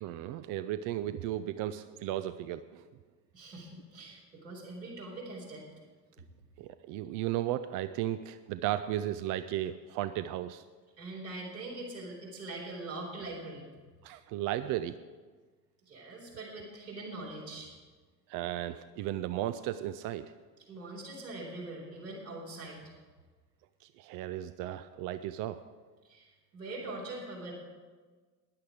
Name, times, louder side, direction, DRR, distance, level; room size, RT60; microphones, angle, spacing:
voice 1, 0.0-2.8 6.6-10.6 14.0-14.9 18.3-20.2 24.0-25.6, right 13 dB, 40° right, 12 dB, 0.6 m, -35 dB
voice 2, 3.3-5.6 11.0-13.7 15.9-17.7 20.7-22.8 26.0-27.5, right 2 dB, 80° right, -4 dB, 4.1 m, -42 dB
15.0 x 10.5 x 4.9 m, 1.4 s
figure-of-eight pair, 60°, 48 cm